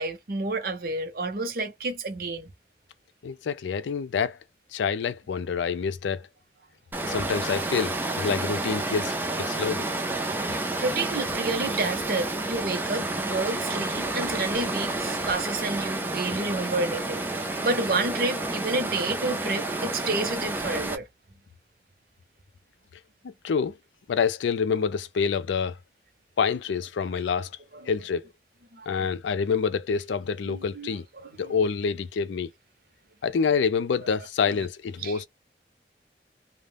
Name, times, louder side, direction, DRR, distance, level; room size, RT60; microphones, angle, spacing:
voice 1, 0.0-2.5 10.5-21.1 27.7-27.9 28.7-29.1 30.5-31.5 34.4-34.6 35.0-35.2, right 2 dB, 55° right, 0.6 m, -30 dB
voice 2, 3.2-4.4 4.7-6.3 7.0-9.9 23.2-23.7 24.1-25.8 26.4-27.5 27.9-28.3 28.9-31.1 31.4-32.5 33.2-35.3, left 6 dB, 85° left, 0.4 m, -27 dB
Water, 6.9-21.0, right 2 dB, 10° right, 0.4 m, -30 dB
2.5 x 2.1 x 3.2 m
head